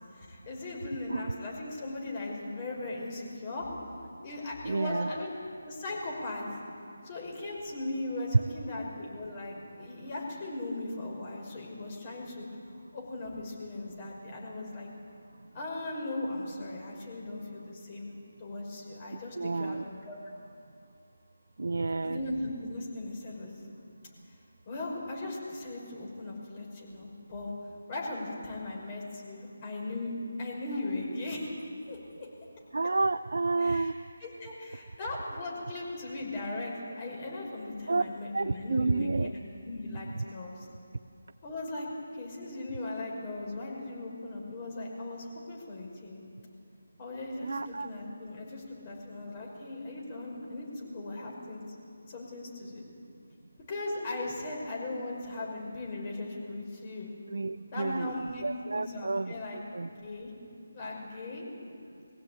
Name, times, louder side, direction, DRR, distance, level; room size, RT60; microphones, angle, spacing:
voice 1, 0.1-3.7 4.2-5.3 5.6-6.5 7.0-12.5 12.9-14.9 15.5-18.1 18.4-20.2 22.0-23.5 24.7-27.5 27.9-30.1 30.4-31.5 31.9-32.0 33.6-33.9 34.2-39.3 39.6-40.7 41.4-41.9 42.1-46.2 47.0-51.8 52.1-52.8 53.7-57.1 57.7-58.4 58.7-59.6 59.9-60.3 60.7-61.5, left 2 dB, 30° left, -2 dB, 5.6 m, -38 dB
voice 2, 4.6-5.1 19.1-19.8 21.6-22.2 32.7-33.9 37.9-38.0 38.3-39.3 47.4-47.9 57.3-59.9, right 3 dB, 70° right, 9 dB, 0.5 m, -30 dB
21.5 x 16.5 x 8.9 m, 2.6 s
figure-of-eight pair, 160°, 0 cm